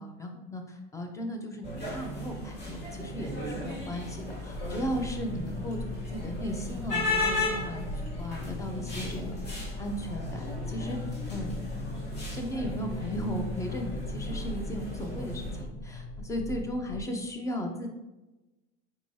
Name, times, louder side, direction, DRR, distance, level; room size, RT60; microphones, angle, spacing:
voice 1, 0.0-17.9, equal, 10° left, 4 dB, 0.5 m, -36 dB
sound 1, 1.6-15.6, left 2 dB, 35° left, 1.2 m, -36 dB
sound 2, 4.5-17.1, left 2 dB, 65° left, 0.5 m, -39 dB
4.5 x 3.0 x 2.7 m, 1.0 s
supercardioid pair, 120°, 31 cm